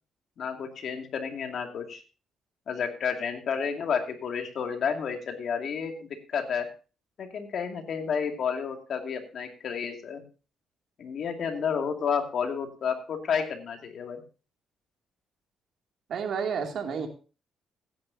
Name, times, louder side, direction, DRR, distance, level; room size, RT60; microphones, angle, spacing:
voice 1, 0.4-2.0 2.7-6.7 7.2-10.2 11.0-14.2, left 6 dB, 60° left, 4 dB, 2.4 m, -31 dB
voice 2, 16.1-17.1, right 6 dB, 65° right, 3 dB, 2.6 m, -30 dB
15.5 x 10.0 x 2.8 m, 0.34 s
cardioid pair, 90°, 0 cm